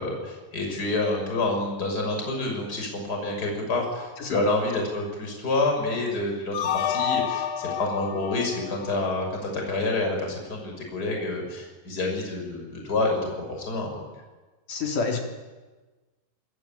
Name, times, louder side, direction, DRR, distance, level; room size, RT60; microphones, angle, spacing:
voice 1, 0.0-14.0, left 2 dB, 20° left, 2 dB, 6.6 m, -28 dB
sound 1, 6.5-9.7, left 9 dB, 70° left, 1.8 m, -29 dB
voice 2, 14.7-15.2, left 4 dB, 50° left, 1 dB, 4.9 m, -28 dB
26.5 x 22.0 x 9.0 m, 1.3 s
omnidirectional pair, 4.9 m